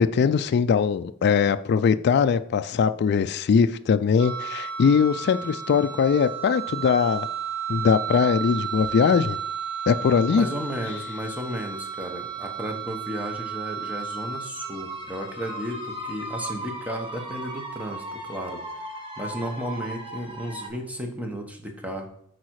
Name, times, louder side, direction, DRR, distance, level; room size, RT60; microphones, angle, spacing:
voice 1, 0.0-7.3 7.7-9.4 9.9-10.5, left 6 dB, 50° left, 11 dB, 0.3 m, -21 dB
sound 1, 4.2-20.7, right 5 dB, 25° right, 1.5 m, -34 dB
voice 2, 10.2-18.6 19.2-22.1, equal, 5° right, 3 dB, 1.2 m, -33 dB
8.4 x 4.8 x 4.7 m, 0.71 s
head